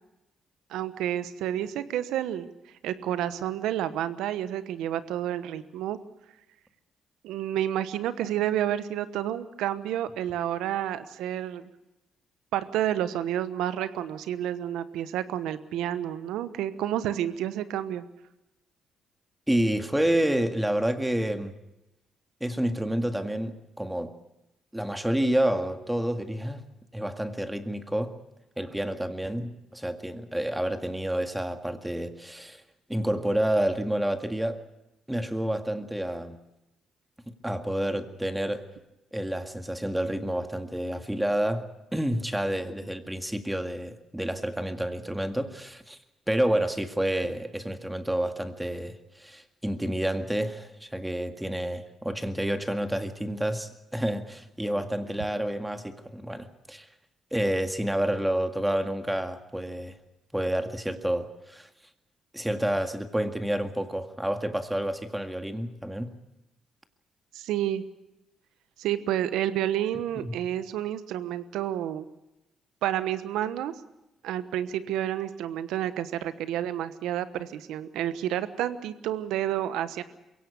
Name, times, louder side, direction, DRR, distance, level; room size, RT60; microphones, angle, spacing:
voice 1, 0.7-2.5 2.8-6.0 7.2-11.7 12.5-18.0 54.8-54.9 67.3-67.8 68.8-72.0 72.8-73.7 74.2-80.0, right 11 dB, 85° right, 13 dB, 1.1 m, -30 dB
voice 2, 19.5-21.5 22.4-24.1 24.7-26.6 26.9-28.2 28.6-32.6 32.9-34.6 35.1-36.4 37.3-38.7 39.1-41.7 41.9-46.0 46.3-56.9 57.3-59.9 60.3-61.7 62.3-66.1 70.2-70.3, right 1 dB, 5° right, 8 dB, 2.0 m, -29 dB
22.0 x 17.0 x 8.2 m, 0.94 s
supercardioid pair, 70°, 0 cm